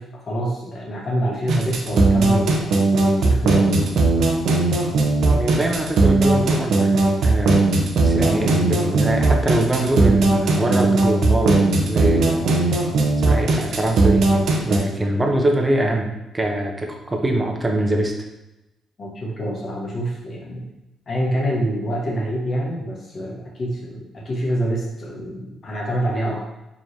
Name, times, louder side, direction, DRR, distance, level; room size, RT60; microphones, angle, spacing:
voice 1, 0.0-3.9 19.0-20.7 21.1-26.5, right 1 dB, 45° left, -3 dB, 1.2 m, -26 dB
sound 1, 1.5-14.8, right 3 dB, 70° right, 0.7 m, -17 dB
voice 2, 5.3-6.9 7.2-7.6 8.0-12.5 13.2-14.3 14.6-16.1 16.3-18.1, right 1 dB, 20° right, 2 dB, 0.7 m, -23 dB
4.6 x 3.1 x 2.7 m, 0.96 s
cardioid pair, 90°, 0 cm